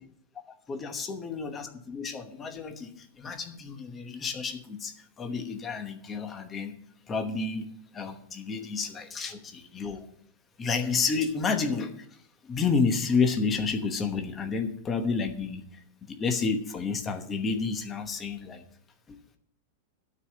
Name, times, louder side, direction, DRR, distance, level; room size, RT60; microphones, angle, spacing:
voice 1, 0.7-6.7 7.1-7.7 7.9-10.1 10.6-12.0 12.5-15.6 16.0-18.6 19.1-19.2, left 4 dB, 15° left, 6 dB, 1.0 m, -30 dB
12.0 x 4.9 x 8.3 m, 0.64 s
supercardioid pair, 175°, 0 cm